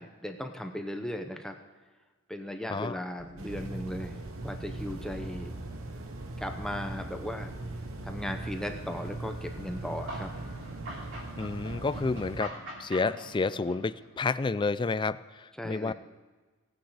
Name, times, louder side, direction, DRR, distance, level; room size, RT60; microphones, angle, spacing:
voice 1, 0.0-1.6 2.3-5.5 6.4-7.5 8.0-10.3 15.6-15.9, left 1 dB, 5° left, 5 dB, 0.7 m, -37 dB
voice 2, 2.7-3.0 11.4-15.9, left 3 dB, 25° left, 16 dB, 0.3 m, -30 dB
Organ, 3.1-12.4, right 1 dB, 35° right, 2.6 m, -49 dB
sound 1, 3.4-12.4, right 2 dB, 85° right, 1.0 m, -40 dB
sound 2, 9.5-14.2, right 1 dB, 65° right, 2.9 m, -43 dB
17.5 x 9.3 x 4.9 m, 1.4 s
head